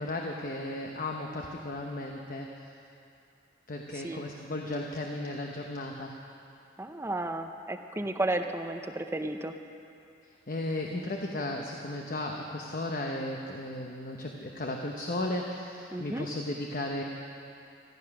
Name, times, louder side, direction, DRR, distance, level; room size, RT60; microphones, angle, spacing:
voice 1, 0.0-2.7 3.7-6.1 10.5-17.0, left 1 dB, 50° left, 1 dB, 0.9 m, -35 dB
voice 2, 6.8-9.5 15.9-16.3, right 2 dB, 15° right, 7 dB, 0.6 m, -33 dB
15.0 x 13.5 x 5.9 m, 2.6 s
head